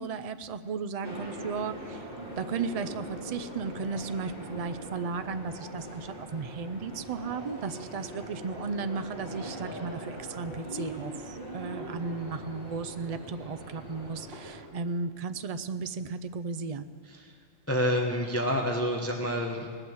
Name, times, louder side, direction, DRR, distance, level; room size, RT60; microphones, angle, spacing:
voice 1, 0.0-2.1 2.4-16.9, right 4 dB, 65° right, 11 dB, 0.3 m, -35 dB
sound 1, 1.0-14.6, equal, 45° right, 2.8 m, -41 dB
voice 2, 17.7-19.7, equal, 15° left, 1 dB, 0.9 m, -28 dB
18.5 x 8.8 x 7.9 m, 2.1 s
omnidirectional pair, 1.4 m